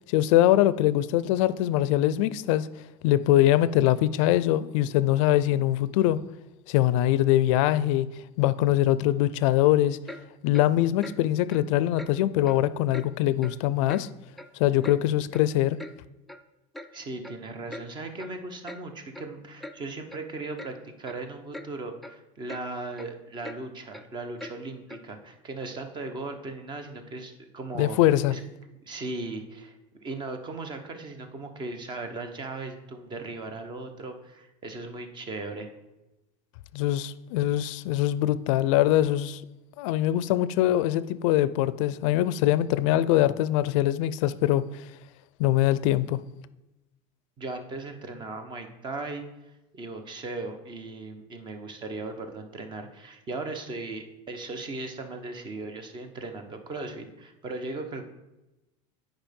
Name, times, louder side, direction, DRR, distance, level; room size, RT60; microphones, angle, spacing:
voice 1, 0.1-2.7 3.0-6.2 6.7-8.1 8.4-10.0 10.4-14.1 14.6-15.8 27.7-28.4 36.7-39.4 39.8-44.6 45.4-46.2, left 13 dB, 80° left, 0.4 m, -23 dB
Clock, 10.1-10.2 10.5-10.7 11.0-11.2 11.5-11.6 12.0-12.1 12.4-12.6 12.9-13.1 13.4-13.6 13.9-14.0 14.4-15.0 15.3-15.4 15.8-15.9 16.3-16.4 16.7-16.9 17.2-17.4 17.7-17.9 18.2-18.3 18.6-18.8 19.1-19.3 19.6-19.8 20.1-20.2 20.6-20.7 21.0-21.2 21.5-21.7 22.0-22.2 22.5-22.6 22.9-23.1 23.4-23.6 23.9-24.0 24.4-24.5 24.9-25.0, left 1 dB, ahead, 0.4 m, -41 dB
voice 2, 16.9-28.0 28.3-28.4 28.8-29.8 30.0-35.7 47.4-49.3 49.7-58.0, right 3 dB, 30° right, 1.0 m, -37 dB
8.9 x 5.2 x 5.3 m
cardioid pair, 145°, 16 cm